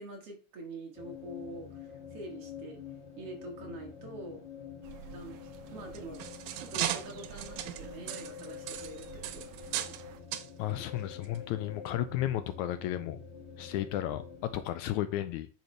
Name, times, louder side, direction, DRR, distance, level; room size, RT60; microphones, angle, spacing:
voice 1, 0.0-2.8 3.2-4.5 5.1-5.4 5.7-10.0, right 2 dB, 55° right, 2.3 m, -45 dB
sound 1, 0.9-14.7, left 7 dB, 40° left, 1.0 m, -47 dB
sound 2, 4.8-10.2, right 10 dB, 70° right, 1.8 m, -52 dB
sound 3, 5.8-10.0 10.3-10.5 11.2-11.4 11.9-12.0, right 12 dB, 85° right, 2.3 m, -37 dB
voice 2, 10.6-13.2 13.6-15.5, left 13 dB, 80° left, 1.8 m, -33 dB
8.9 x 6.6 x 3.3 m
omnidirectional pair, 3.6 m